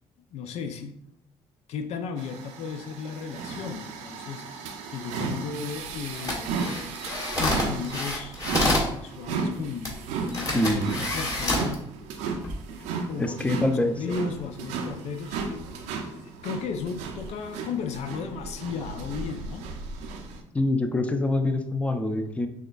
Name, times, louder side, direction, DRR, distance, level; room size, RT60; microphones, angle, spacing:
voice 1, 0.3-1.1 1.7-6.5 7.3-12.0 13.1-13.5 14.0-19.7, left 6 dB, 65° left, 7 dB, 0.4 m, -35 dB
sound 1, 2.2-20.4, right 4 dB, 85° right, 0.5 m, -35 dB
sound 2, 6.1-8.9 9.8-9.9 10.3-11.7 12.3-12.5, left 1 dB, 30° left, 1.4 m, -28 dB
voice 2, 10.5-10.9 13.2-14.2 20.5-22.5, left 1 dB, 10° left, 7 dB, 0.5 m, -25 dB
6.2 x 2.3 x 2.3 m, 0.75 s
supercardioid pair, 70°, 12 cm